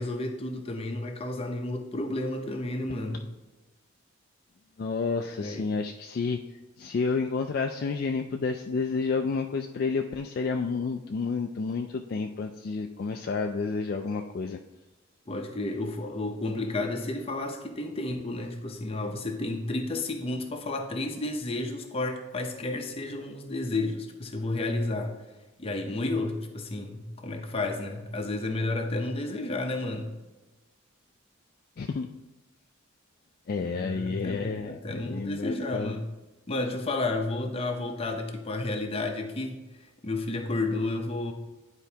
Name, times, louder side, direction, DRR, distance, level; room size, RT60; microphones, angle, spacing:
voice 1, 0.0-3.3 5.4-5.7 15.3-25.2 25.6-30.1 33.6-36.1 36.5-39.6 40.0-41.3, left 2 dB, 30° left, 4 dB, 0.7 m, -31 dB
voice 2, 4.8-6.4 6.8-14.6 31.8-32.1 33.5-36.0, left 4 dB, 45° left, 4 dB, 0.3 m, -30 dB
10.5 x 4.4 x 2.8 m, 1.1 s
head